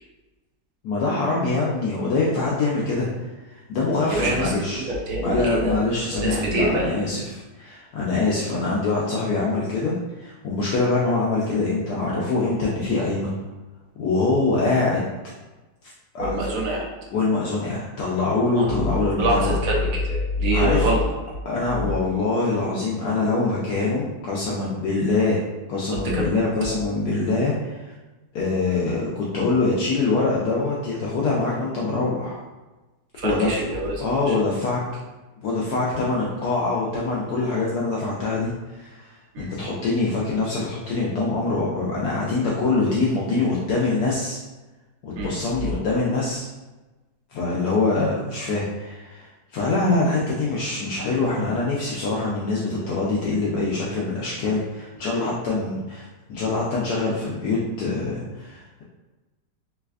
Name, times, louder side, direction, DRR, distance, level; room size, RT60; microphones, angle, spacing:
voice 1, 0.8-3.1 3.4-4.9 5.2-13.3 14.0-15.1 16.1-16.3 17.1-19.6 20.5-20.9 21.5-25.4 25.7-27.9 28.3-32.4 33.2-33.5 34.0-34.8 35.4-44.4 45.0-46.5 47.3-58.8, left 3 dB, 75° left, -5 dB, 1.0 m, -24 dB
voice 2, 4.1-5.8 6.1-6.9 16.2-16.9 18.6-18.7 19.2-21.0 26.0-26.3 33.2-34.0 34.3-34.4 39.3-39.5 45.1-45.3, right 1 dB, 65° right, -3 dB, 0.9 m, -24 dB
3.3 x 3.1 x 2.4 m, 1.1 s
omnidirectional pair, 1.9 m